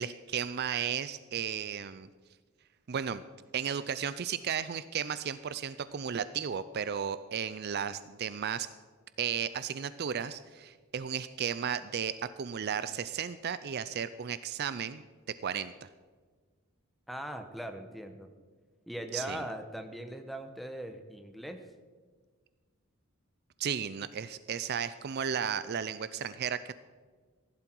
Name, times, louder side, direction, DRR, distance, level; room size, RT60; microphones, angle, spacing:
voice 1, 0.0-2.1 2.9-3.2 3.5-8.7 9.2-15.0 15.3-15.9 19.1-19.4 23.6-26.7, right 8 dB, 45° right, 14 dB, 0.4 m, -34 dB
voice 2, 17.1-18.3 18.9-21.6, right 1 dB, ahead, 6 dB, 1.0 m, -40 dB
15.0 x 11.5 x 4.6 m, 1.5 s
head